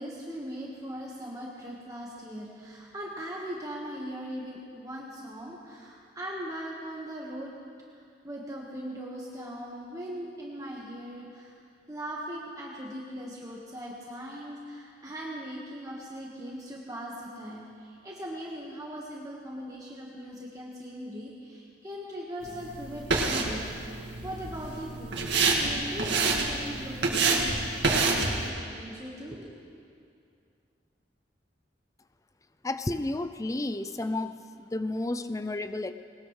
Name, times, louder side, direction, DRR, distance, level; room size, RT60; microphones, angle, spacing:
voice 1, 0.0-7.5 8.2-11.5 11.9-27.6 27.9-29.7, equal, 20° right, -4 dB, 1.4 m, -40 dB
sound 1, 22.4-28.5, right 3 dB, 70° right, 1.9 m, -28 dB
voice 2, 32.6-35.9, left 2 dB, 15° left, 11 dB, 0.4 m, -32 dB
20.5 x 19.0 x 3.2 m, 2.4 s
head